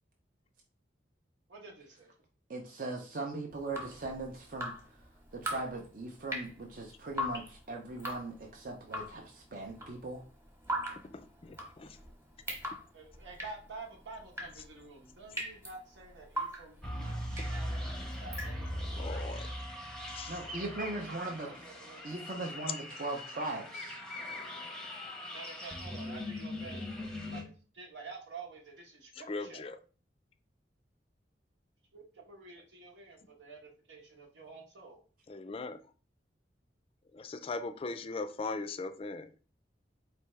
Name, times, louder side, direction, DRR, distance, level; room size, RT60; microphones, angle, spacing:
voice 1, 1.5-2.1 12.9-17.8 18.2-18.7 21.6-22.0 25.3-29.6 31.9-35.0, right 4 dB, 85° right, 1.1 m, -49 dB
voice 2, 2.5-4.7 5.3-10.2 20.3-21.5 22.0-24.0, right 2 dB, 50° right, 0.6 m, -39 dB
Drip, 3.5-19.0, equal, 15° right, 1.0 m, -41 dB
voice 3, 11.1-12.0 19.0-19.5 20.1-20.4 29.3-29.8 35.3-35.8 37.1-39.3, left 3 dB, 30° left, 0.3 m, -39 dB
sound 1, 16.8-27.4, left 1 dB, 5° left, 0.7 m, -40 dB
4.3 x 3.4 x 3.2 m
head